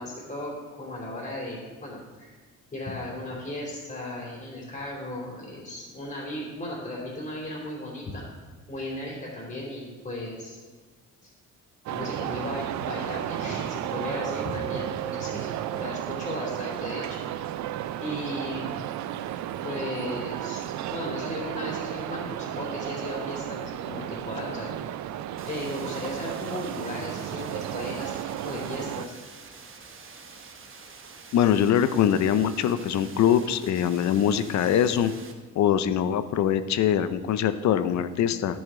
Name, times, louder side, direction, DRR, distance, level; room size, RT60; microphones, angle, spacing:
voice 1, 0.0-2.3 2.7-8.2 8.7-10.6 11.2-11.3 11.9-17.2 18.0-18.8 19.6-20.6 20.9-24.7 25.5-29.1, left 1 dB, 30° left, -8 dB, 3.1 m, -36 dB
sound 1, 11.9-29.1, right 12 dB, 70° right, 0.4 m, -33 dB
sound 2, 25.4-35.3, right 4 dB, 45° right, 1.1 m, -47 dB
voice 2, 31.3-35.1 35.6-38.6, left 9 dB, 65° left, 12 dB, 0.6 m, -23 dB
10.0 x 7.2 x 3.7 m, 1.4 s
cardioid pair, 90°, 30 cm